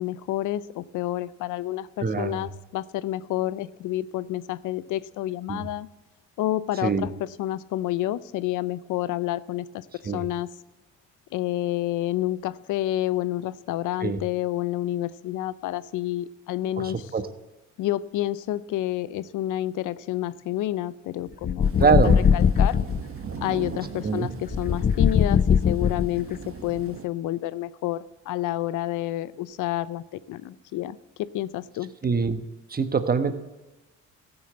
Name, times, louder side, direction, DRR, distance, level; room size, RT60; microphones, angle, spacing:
voice 1, 0.0-5.9 6.4-10.5 11.3-17.1 17.8-21.9 22.3-22.8 23.4-31.9, left 14 dB, 85° left, 18 dB, 0.6 m, -29 dB
voice 2, 2.0-2.4 5.5-5.7 6.8-7.1 10.0-10.2 14.0-14.2 16.8-17.2 21.8-22.3 24.0-24.3 32.0-32.4 32.7-33.3, right 5 dB, 30° right, 10 dB, 1.3 m, -24 dB
sound 1, 21.4-23.0 24.5-26.3, left 7 dB, 30° left, 0.4 m, -20 dB
sound 2, 21.6-27.1, right 6 dB, 45° right, 1.4 m, -39 dB
14.5 x 7.0 x 7.8 m, 1.1 s
cardioid pair, 90°, 30 cm